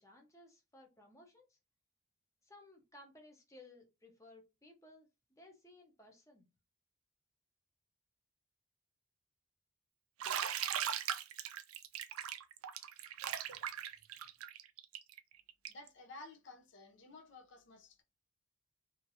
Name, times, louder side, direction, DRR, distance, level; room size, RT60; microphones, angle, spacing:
voice 1, 0.0-1.6 2.4-6.5, left 1 dB, 15° left, 0.7 m, -59 dB
Bathtub (filling or washing), 10.2-15.9, right 9 dB, 80° right, 0.4 m, -39 dB
voice 2, 15.7-18.0, left 2 dB, 55° left, 0.6 m, -54 dB
2.9 x 2.5 x 2.7 m
head